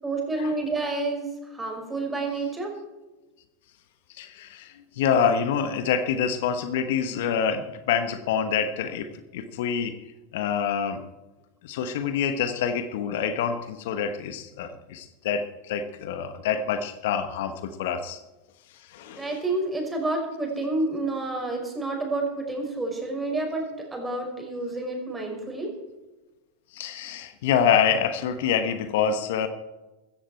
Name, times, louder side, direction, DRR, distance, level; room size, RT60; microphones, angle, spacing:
voice 1, 0.0-2.8 19.2-23.6 23.9-25.7, right 2 dB, 15° right, 1 dB, 5.9 m, -29 dB
voice 2, 4.2-9.9 10.3-11.0 11.6-18.2 18.9-19.3 26.7-29.5, left 7 dB, 65° left, 10 dB, 1.3 m, -26 dB
16.0 x 14.5 x 4.5 m, 1.1 s
hypercardioid pair, 90°, 0 cm